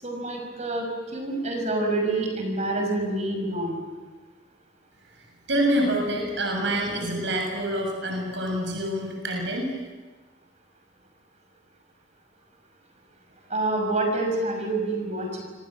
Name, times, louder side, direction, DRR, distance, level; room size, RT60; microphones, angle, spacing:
voice 1, 0.0-3.7 13.5-15.4, right 2 dB, 40° right, 3 dB, 6.0 m, -27 dB
voice 2, 5.5-9.8, right 1 dB, 75° right, 1 dB, 7.4 m, -26 dB
28.5 x 26.5 x 7.7 m, 1.3 s
head